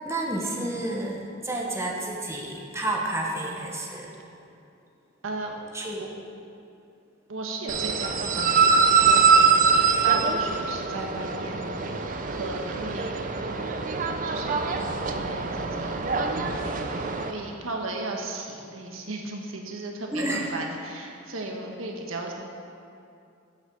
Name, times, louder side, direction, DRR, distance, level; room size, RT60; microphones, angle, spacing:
voice 1, 0.0-4.2 5.7-6.0 20.1-20.5, right 1 dB, 15° right, -1 dB, 1.0 m, -30 dB
voice 2, 5.2-5.6 6.0-6.1 7.3-9.2 10.0-13.8 14.3-22.3, right 2 dB, 85° right, 1 dB, 1.2 m, -36 dB
sound 1, 7.7-17.3, right 5 dB, 40° right, 0.5 m, -23 dB
8.1 x 6.3 x 6.8 m, 2.6 s
head